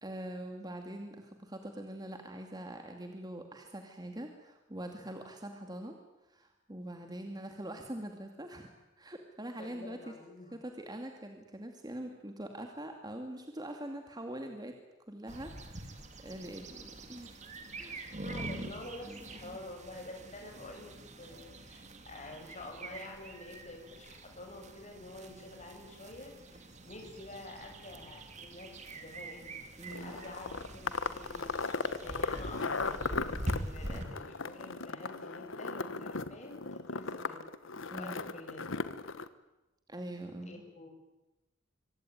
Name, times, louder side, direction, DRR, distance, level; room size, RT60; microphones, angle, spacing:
voice 1, 0.0-6.0 6.3-8.7 9.0-10.1 10.5-14.7 15.1-17.4 17.7-18.2 19.0-19.6 29.8-30.2 37.9-38.2 39.9-40.6, right 1 dB, 20° right, 4 dB, 2.5 m, -43 dB
voice 2, 9.6-10.5 18.2-29.5 30.0-31.5 32.0-37.4 37.9-38.6 40.5-40.9, left 2 dB, 35° left, 2 dB, 6.9 m, -48 dB
sound 1, 15.3-34.0, right 1 dB, 35° right, 2.8 m, -44 dB
sound 2, 29.9-39.3, left 4 dB, 85° left, 1.4 m, -37 dB
25.5 x 24.5 x 9.3 m, 1.0 s
head